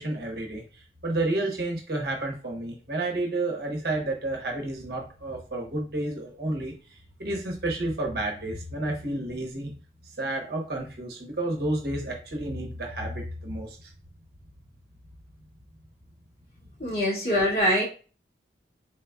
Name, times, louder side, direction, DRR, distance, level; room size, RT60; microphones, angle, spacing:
voice 1, 0.0-6.8 7.2-9.7 10.2-13.9, right 2 dB, 60° right, 0 dB, 0.9 m, -31 dB
voice 2, 16.8-17.8, equal, 65° left, -6 dB, 1.9 m, -23 dB
4.3 x 3.9 x 2.3 m, 0.37 s
head